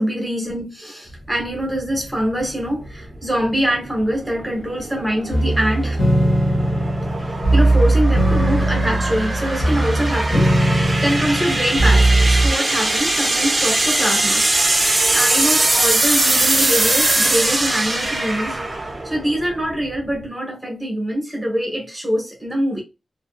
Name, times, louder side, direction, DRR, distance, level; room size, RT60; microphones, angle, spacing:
voice 1, 0.0-6.0 7.2-14.5 15.1-22.8, equal, 5° right, 1.0 m, -24 dB
sound 1, 1.1-20.2, right 2 dB, 25° right, 0.5 m, -22 dB
sound 2, 5.3-12.5, right 1 dB, 50° left, 1.0 m, -18 dB
2.6 x 2.5 x 2.3 m
wide cardioid pair, 160°, 0 cm